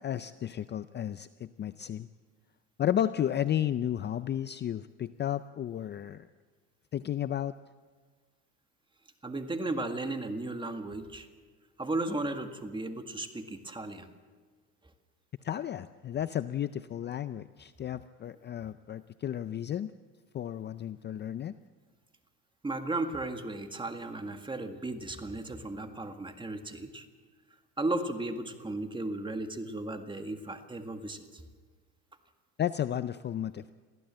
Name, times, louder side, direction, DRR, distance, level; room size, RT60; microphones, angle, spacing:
voice 1, 0.0-2.1 2.8-6.3 6.9-7.5 15.4-19.9 20.3-21.6 32.6-33.7, left 10 dB, 30° left, 13 dB, 0.5 m, -33 dB
voice 2, 9.2-11.3 11.8-14.1 22.6-27.0 27.8-31.2, right 2 dB, 15° right, 7 dB, 1.9 m, -35 dB
23.0 x 15.5 x 7.6 m, 1.4 s
cardioid pair, 110°, 35 cm